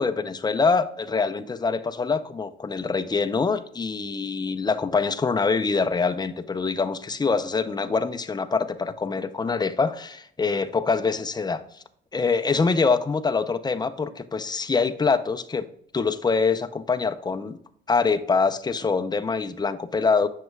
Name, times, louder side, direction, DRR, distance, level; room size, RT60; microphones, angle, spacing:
voice 1, 0.0-11.8 12.1-15.6 15.9-17.6 17.9-20.3, left 4 dB, 20° left, 9 dB, 0.6 m, -24 dB
7.6 x 6.5 x 2.3 m, 0.65 s
cardioid pair, 90°, 20 cm